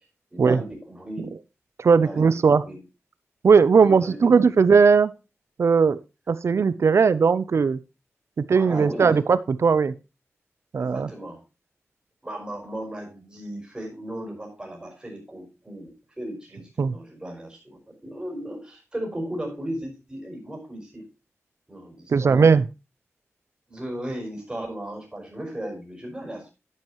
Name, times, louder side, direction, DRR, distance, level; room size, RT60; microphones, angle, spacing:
voice 1, 0.3-1.3 2.0-2.8 3.7-4.3 8.5-9.2 10.8-11.4 12.2-15.9 16.2-21.1 21.7-22.5 23.7-26.5, right 1 dB, 15° right, 0 dB, 5.0 m, -36 dB
voice 2, 1.8-2.6 3.4-5.1 5.6-6.0 6.3-7.8 8.4-9.9 10.7-11.1 16.8-17.0 22.1-22.6, right 5 dB, 65° right, 16 dB, 0.6 m, -18 dB
10.5 x 10.0 x 3.0 m, 0.28 s
wide cardioid pair, 135°, 5 cm